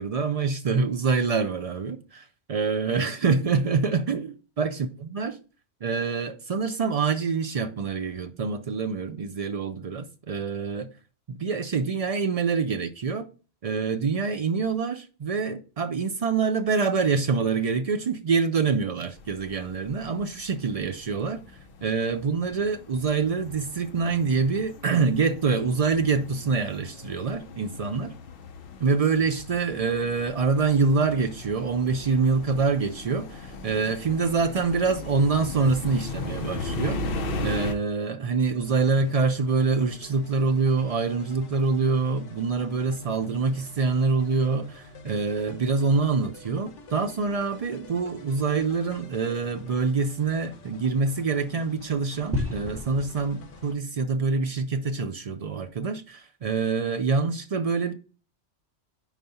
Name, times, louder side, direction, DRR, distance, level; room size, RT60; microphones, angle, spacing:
voice 1, 0.0-2.0 2.5-4.3 4.6-5.4 5.8-10.9 11.3-13.3 13.6-21.4 21.8-28.1 28.8-37.1 37.4-57.9, right 4 dB, 60° right, 0.3 m, -25 dB
sound 1, 19.2-37.7, left 3 dB, 55° left, 0.8 m, -38 dB
sound 2, 38.2-53.7, left 1 dB, 15° right, 0.9 m, -42 dB
sound 3, 38.7-53.8, left 4 dB, 85° left, 1.1 m, -49 dB
4.6 x 4.0 x 5.4 m
omnidirectional pair, 1.2 m